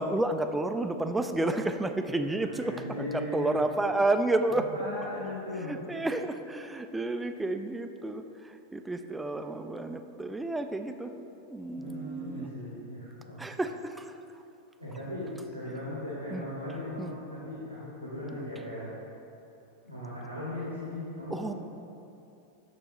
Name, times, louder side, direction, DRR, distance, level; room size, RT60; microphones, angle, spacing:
voice 1, 0.0-4.7 5.0-5.1 5.6-11.1 11.5-12.5 13.4-14.2 16.3-16.5 17.0-17.2 18.3-18.5 21.3-21.5, right 2 dB, 10° right, 8 dB, 0.3 m, -31 dB
voice 2, 2.6-3.5 4.5-5.7 11.8-13.4 14.8-18.9 19.8-21.5, left 1 dB, 90° right, -7 dB, 1.3 m, -38 dB
6.6 x 6.2 x 2.9 m, 2.7 s
figure-of-eight pair, 90°, 0 cm